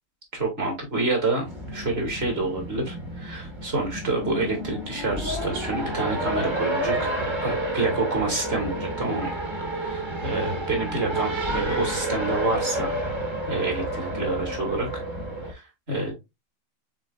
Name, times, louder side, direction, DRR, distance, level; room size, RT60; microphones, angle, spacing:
voice 1, 0.4-1.5 1.7-7.1 7.4-9.4 9.8-12.9 13.5-15.0 15.5-16.1, right 3 dB, 50° right, 1 dB, 2.1 m, -28 dB
Race car auto racing, 1.5-15.5, right 1 dB, 20° right, 1.0 m, -30 dB
6.3 x 3.5 x 2.4 m, 0.22 s
omnidirectional pair, 1.4 m